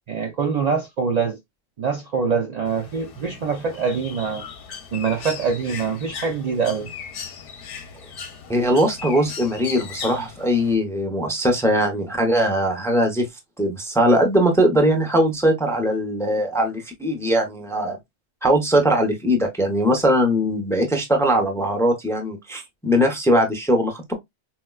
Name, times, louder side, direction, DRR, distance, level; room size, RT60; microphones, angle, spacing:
voice 1, 0.0-1.4 1.8-4.4 4.9-6.9, right 5 dB, 70° right, 0.4 m, -24 dB
Bird, 2.7-10.8, left 6 dB, 55° left, 0.7 m, -38 dB
voice 2, 8.5-13.3 13.6-18.0 18.4-24.2, equal, 5° left, 0.5 m, -20 dB
4.5 x 2.2 x 2.2 m
omnidirectional pair, 1.3 m